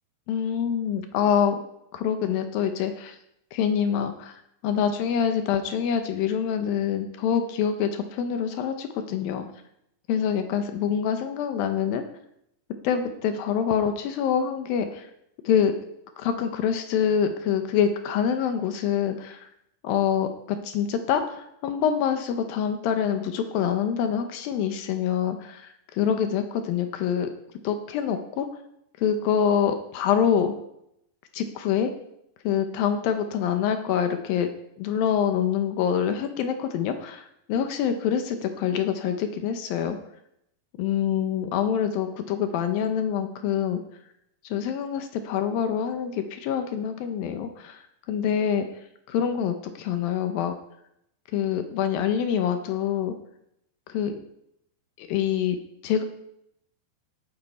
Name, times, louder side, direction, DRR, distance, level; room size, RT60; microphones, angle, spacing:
voice 1, 0.3-1.6 1.9-3.2 3.5-9.5 10.1-12.0 12.8-15.1 15.4-15.7 16.2-19.5 19.8-27.3 27.6-28.5 29.0-30.5 31.3-31.9 32.4-34.5 34.8-40.0 40.8-43.8 44.5-47.8 48.1-48.7 49.1-50.5 51.3-53.2 53.9-54.2 55.0-55.6 55.8-56.0, left 8 dB, 80° left, 7 dB, 2.6 m, -25 dB
17.0 x 8.8 x 4.2 m, 0.78 s
omnidirectional pair, 4.2 m